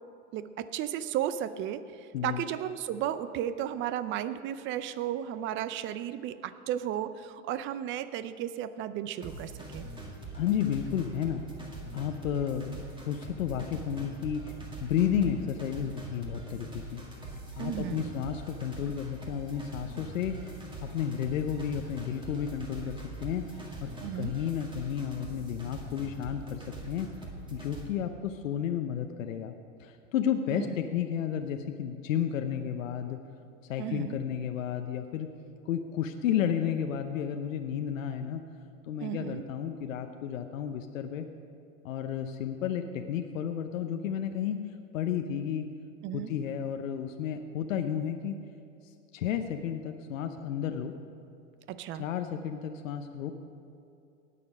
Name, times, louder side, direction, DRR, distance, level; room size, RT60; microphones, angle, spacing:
voice 1, 0.3-9.9 17.6-18.1 24.0-24.3 30.5-30.7 33.8-34.2 39.0-39.4 46.0-46.3 51.7-52.0, right 11 dB, 30° right, 14 dB, 0.5 m, -34 dB
sound 1, 9.2-27.9, right 2 dB, 10° right, 1.9 m, -43 dB
voice 2, 10.3-11.4 11.9-17.0 17.6-23.5 23.8-27.1 27.5-29.5 29.8-33.2 33.6-35.3 35.6-38.4 38.9-41.3 41.8-44.6 44.9-45.7 46.1-48.4 49.1-50.9 52.0-53.3, left 9 dB, 85° left, 6 dB, 0.8 m, -32 dB
18.5 x 6.9 x 5.3 m, 2.6 s
hypercardioid pair, 115°, 39 cm